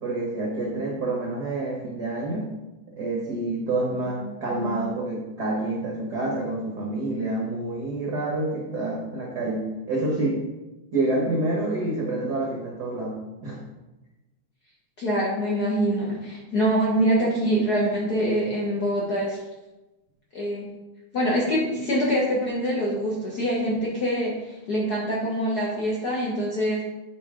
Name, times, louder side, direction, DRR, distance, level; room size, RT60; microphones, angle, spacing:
voice 1, 0.0-2.5 2.9-10.4 10.9-13.6, right 2 dB, 65° right, -2 dB, 1.0 m, -28 dB
voice 2, 15.0-19.4 20.3-20.7 21.1-26.8, equal, 80° left, -4 dB, 0.8 m, -24 dB
9.5 x 5.0 x 3.7 m, 1.0 s
omnidirectional pair, 3.5 m